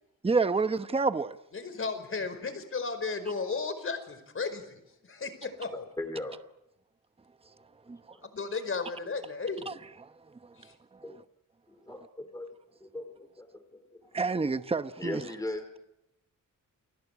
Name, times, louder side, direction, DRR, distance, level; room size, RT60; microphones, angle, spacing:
voice 1, 0.2-1.4 7.9-8.2 9.7-9.8 10.0-11.2 14.1-15.3, right 4 dB, 20° right, 1.0 m, -30 dB
voice 2, 1.5-5.9 8.2-9.7 10.5-10.7, left 4 dB, 40° left, 5.0 m, -35 dB
voice 3, 5.7-6.4 8.1-8.2 11.0-11.2 11.7-14.2 15.0-15.6, left 2 dB, 10° left, 3.0 m, -39 dB
29.5 x 21.0 x 8.4 m
wide cardioid pair, 150°, 32 cm